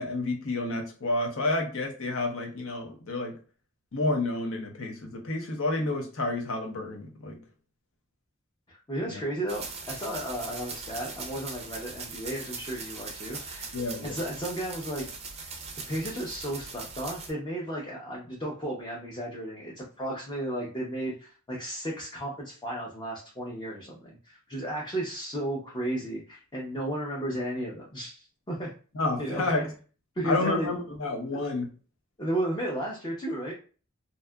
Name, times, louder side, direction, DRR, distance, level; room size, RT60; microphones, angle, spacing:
voice 1, 0.0-3.3 3.9-7.4 9.0-9.2 13.7-14.2 28.9-29.7 30.2-31.7, left 2 dB, 65° left, 2 dB, 0.7 m, -30 dB
voice 2, 8.7-13.7 14.0-15.0 15.9-28.7 29.2-29.7 30.2-30.7 31.3-31.4 32.2-33.5, right 1 dB, 20° left, -4 dB, 0.6 m, -34 dB
sound 1, 9.5-17.3, right 4 dB, 30° right, 0.4 m, -40 dB
2.7 x 2.3 x 2.2 m, 0.38 s
head